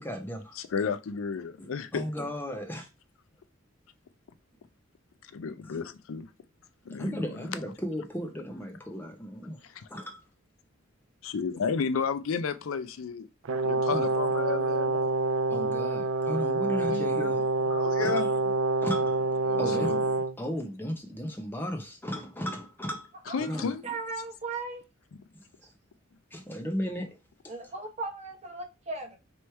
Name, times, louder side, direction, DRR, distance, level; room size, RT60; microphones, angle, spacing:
voice 1, 0.0-0.6 1.6-2.9 5.6-5.7 6.9-9.6 9.9-10.2 11.6-11.7 13.9-14.1 15.5-17.7 18.0-18.3 18.8-23.9 26.3-27.7, equal, 10° left, 0.8 m, -36 dB
voice 2, 0.6-2.0 5.2-6.3 6.9-7.2 11.2-13.3 13.6-15.1 16.9-17.3 17.7-18.3 19.5-20.0 23.3-23.8 25.1-25.2, left 5 dB, 80° left, 0.4 m, -32 dB
Brass instrument, 13.5-20.4, right 3 dB, 75° right, 0.4 m, -27 dB
voice 3, 23.3-24.8 27.5-29.2, right 3 dB, 35° right, 1.0 m, -37 dB
3.1 x 3.1 x 4.5 m
head